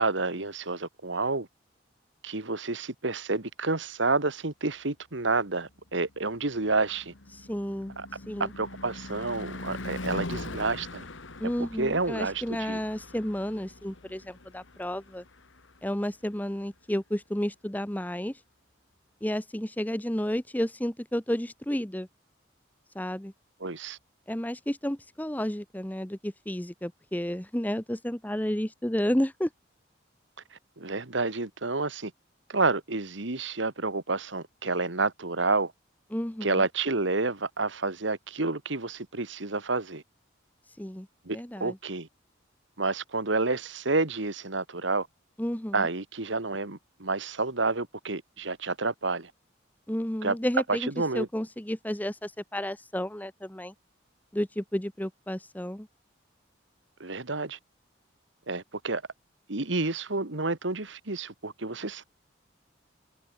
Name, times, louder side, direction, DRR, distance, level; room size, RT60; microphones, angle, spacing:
voice 1, 0.0-1.5 2.2-7.1 8.0-8.1 8.4-11.1 11.8-12.8 23.6-24.0 30.5-32.1 32.5-35.7 36.4-40.0 41.3-42.1 42.8-45.1 45.7-49.3 50.2-50.4 50.7-51.3 57.0-57.6 58.5-59.0 59.5-62.0, right 3 dB, 70° right, 1.8 m, -29 dB
Car passing by / Truck / Engine, 6.1-16.3, left 2 dB, 80° left, 2.1 m, -42 dB
voice 2, 7.3-7.9 8.3-8.5 11.4-15.2 15.8-18.4 19.2-22.1 22.9-23.3 24.3-29.5 36.1-36.6 40.8-41.1 41.3-41.8 45.4-45.9 49.9-50.9 51.1-53.7 54.3-55.9, equal, 10° left, 0.9 m, -31 dB
head